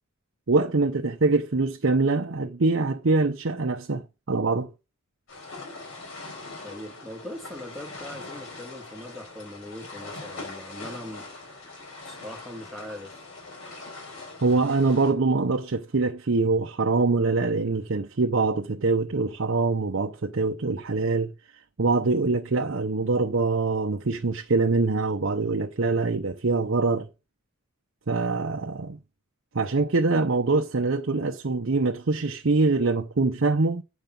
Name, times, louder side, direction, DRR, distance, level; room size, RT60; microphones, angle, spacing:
voice 1, 0.5-4.0 4.3-4.7 14.4-21.3 21.8-27.1 28.1-29.0 29.5-33.8, right 3 dB, 65° right, 0.7 m, -24 dB
sound 1, 5.3-15.1, left 3 dB, 70° left, 5.1 m, -42 dB
voice 2, 6.6-11.3 12.0-13.2, left 1 dB, ahead, 1.8 m, -41 dB
8.9 x 5.2 x 5.9 m
head